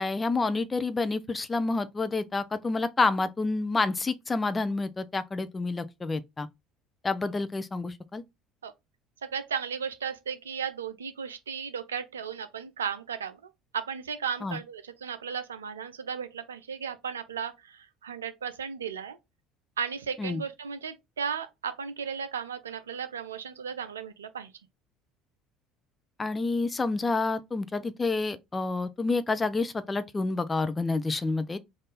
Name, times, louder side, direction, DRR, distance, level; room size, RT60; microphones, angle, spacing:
voice 1, 0.0-6.5 7.0-8.2 14.4-14.6 20.2-20.4 26.2-31.6, left 3 dB, 20° left, 0.5 m, -28 dB
voice 2, 9.2-13.4 13.7-19.2 19.8-24.5, right 7 dB, 85° right, 0.5 m, -35 dB
3.6 x 2.5 x 3.9 m
figure-of-eight pair, 60°, 0 cm